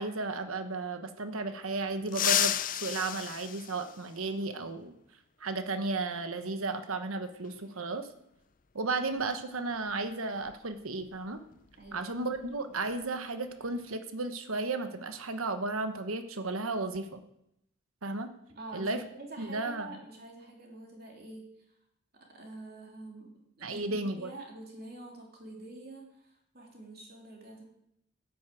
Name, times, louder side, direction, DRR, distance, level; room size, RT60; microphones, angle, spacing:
voice 1, 0.0-2.5 2.8-4.9 5.4-8.1 8.7-11.4 11.9-17.2 18.0-18.3 18.7-19.0 19.4-20.0 23.6-24.3, right 3 dB, 90° right, 9 dB, 1.2 m, -34 dB
sound 1, 2.1-4.5 6.1-6.2 7.4-7.5 9.2-9.3 9.7-9.9 10.4-12.6 12.8-13.1 13.5-13.9, left 11 dB, 40° left, 0.5 m, -33 dB
voice 2, 11.8-12.3 18.5-21.5 22.2-27.6, right 2 dB, 45° right, 0 dB, 3.3 m, -47 dB
11.5 x 9.5 x 7.7 m, 0.79 s
head